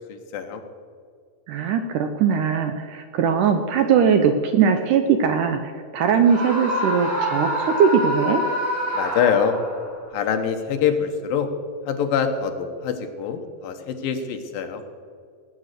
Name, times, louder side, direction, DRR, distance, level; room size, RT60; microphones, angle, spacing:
voice 1, 0.1-0.6 8.9-9.6 10.1-11.5 11.9-14.8, left 7 dB, 70° left, 6 dB, 2.7 m, -24 dB
voice 2, 1.5-8.4, right 7 dB, 75° right, 7 dB, 2.0 m, -20 dB
Screaming, 6.2-9.9, equal, 50° right, 5.4 m, -26 dB
19.0 x 8.7 x 6.6 m, 2.2 s
omnidirectional pair, 4.4 m